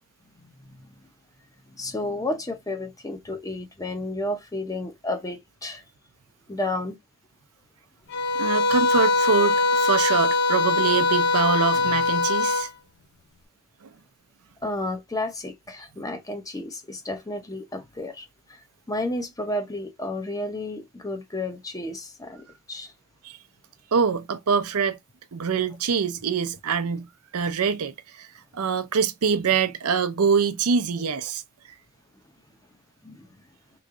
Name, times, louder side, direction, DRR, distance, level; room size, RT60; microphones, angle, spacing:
voice 1, 0.3-0.9 1.7-5.8 6.5-7.0 14.6-22.9 33.0-33.3, left 1 dB, 15° left, 0.7 m, -32 dB
sound 1, 8.1-12.7, left 4 dB, 55° left, 0.7 m, -22 dB
voice 2, 8.4-12.7 13.8-13.9 23.2-23.4 23.9-25.0 25.3-27.1 27.3-28.3 28.5-31.4, right 6 dB, 80° right, 0.6 m, -24 dB
3.1 x 2.4 x 3.7 m
head